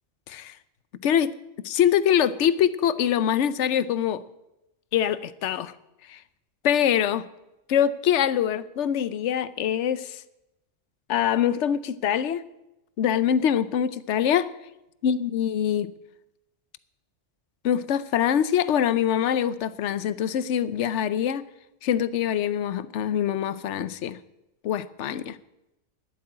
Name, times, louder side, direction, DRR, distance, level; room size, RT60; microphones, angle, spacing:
voice 1, 1.0-1.3 1.6-4.2 4.9-5.7 6.1-6.2 6.6-7.2 7.7-10.2 11.1-12.4 13.0-14.5 15.0-15.9 17.6-21.4 21.8-24.2 24.6-25.4, left 9 dB, 75° left, 16 dB, 1.0 m, -24 dB
11.5 x 8.6 x 9.8 m, 0.91 s
omnidirectional pair, 1.2 m